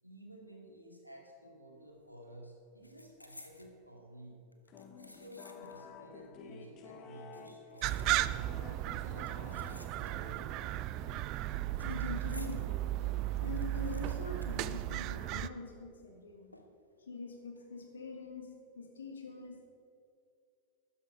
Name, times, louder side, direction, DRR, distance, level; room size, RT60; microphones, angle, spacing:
voice 1, 0.0-4.4 5.0-8.2 8.6-10.5, right 1 dB, 90° right, 0 dB, 2.2 m, -53 dB
sound 1, 1.8-2.1 2.3-3.8 4.5-5.9 6.2-6.3 7.1-8.6 9.2-10.4 10.7-12.7 13.1-13.2 13.4-15.5 15.7-15.8 16.5-17.0 17.4-17.6, left 1 dB, 85° left, 1.0 m, -56 dB
sound 2, 4.7-12.1, left 5 dB, 35° left, 1.1 m, -52 dB
sound 3, 7.8-15.5, right 15 dB, 40° right, 0.4 m, -35 dB
voice 2, 11.8-16.6 17.1-18.5 18.8-19.7, left 4 dB, 70° left, 4 dB, 1.8 m, -44 dB
12.5 x 9.8 x 5.5 m, 2.4 s
figure-of-eight pair, 90°, 0 cm